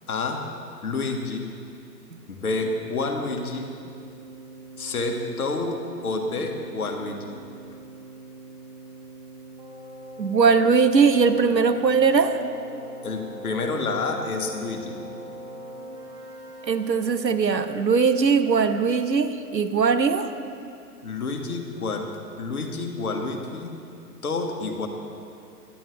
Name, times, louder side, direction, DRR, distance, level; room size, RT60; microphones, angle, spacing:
voice 1, 0.1-0.4 0.8-1.5 2.3-3.7 4.8-7.4 7.7-7.8 13.0-15.0 21.0-22.1 22.4-23.8 24.2-24.9, left 3 dB, 60° left, 4 dB, 1.7 m, -29 dB
Keyboard (musical), 2.4-17.4, right 1 dB, 35° right, 2.2 m, -42 dB
voice 2, 10.2-12.4 16.7-20.3, right 5 dB, 85° right, 9 dB, 0.9 m, -20 dB
16.5 x 11.5 x 3.4 m, 2.6 s
figure-of-eight pair, 115°, 49 cm